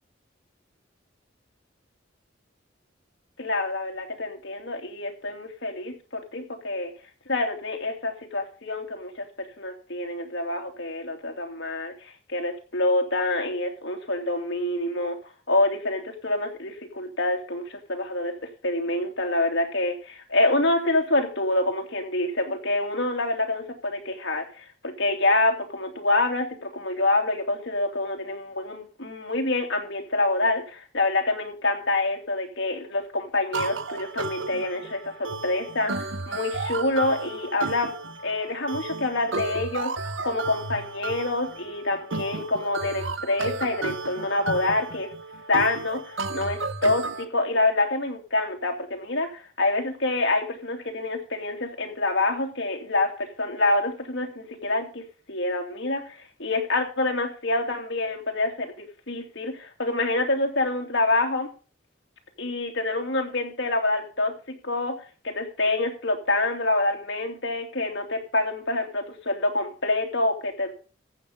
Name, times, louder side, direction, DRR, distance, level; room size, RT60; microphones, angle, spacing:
voice 1, 3.4-6.9 7.3-9.2 9.6-15.2 15.5-18.3 18.6-37.9 38.2-45.1 45.5-55.0 55.3-61.5 62.4-64.9 65.2-70.7, left 2 dB, 70° left, 2 dB, 3.0 m, -26 dB
sound 1, 33.5-47.2, right 3 dB, 85° right, 1.0 m, -33 dB
14.5 x 8.0 x 5.3 m, 0.36 s
head